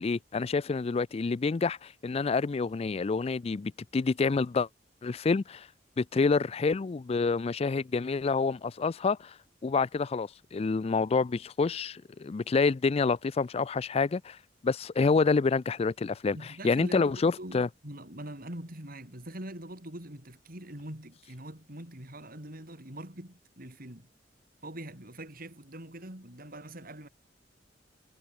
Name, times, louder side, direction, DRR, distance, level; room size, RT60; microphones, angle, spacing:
voice 1, 0.0-4.7 5.0-5.7 6.0-9.3 9.6-14.4 14.6-17.7, left 4 dB, 35° left, 0.4 m, -28 dB
voice 2, 16.3-24.1 24.6-27.1, right 1 dB, 55° right, 6.4 m, -43 dB
head